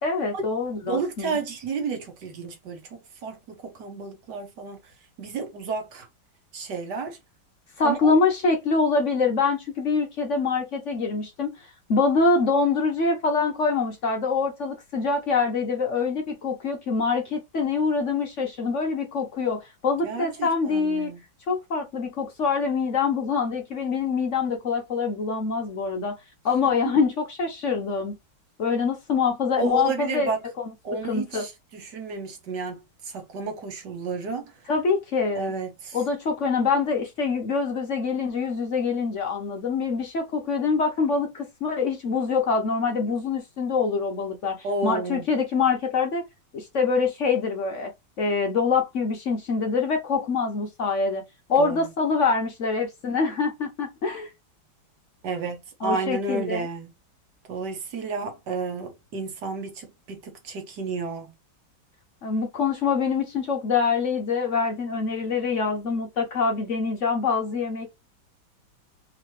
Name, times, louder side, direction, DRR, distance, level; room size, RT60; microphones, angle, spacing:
voice 1, 0.0-1.4 7.8-11.5 11.9-21.1 21.5-26.1 26.4-28.1 28.6-30.3 31.0-31.4 34.7-35.5 35.9-46.2 46.5-47.9 48.2-51.2 51.5-54.3 55.8-56.7 62.2-67.9, left 4 dB, 50° left, 0.9 m, -25 dB
voice 2, 0.8-4.8 5.2-6.1 6.5-7.2 7.8-8.2 20.0-21.2 26.6-26.7 29.6-30.4 30.8-34.5 35.3-36.0 44.6-45.2 51.6-51.8 55.2-56.9 57.5-61.3, right 4 dB, 65° right, 1.5 m, -31 dB
3.7 x 3.0 x 2.9 m
omnidirectional pair, 2.2 m